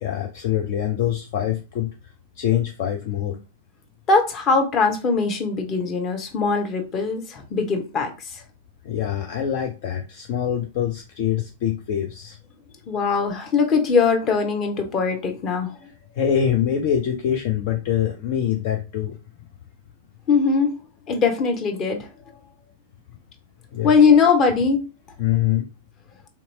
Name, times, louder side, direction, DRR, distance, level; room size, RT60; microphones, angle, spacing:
voice 1, 0.0-1.9 2.4-3.4 8.8-12.4 16.1-19.1 23.7-23.9 25.2-25.7, left 10 dB, 50° left, 3 dB, 0.5 m, -24 dB
voice 2, 4.1-8.1 12.9-15.7 20.3-20.7 21.1-22.1 23.8-24.8, left 5 dB, 30° left, 4 dB, 0.9 m, -20 dB
3.4 x 2.8 x 2.7 m, 0.31 s
figure-of-eight pair, 95°, 0 cm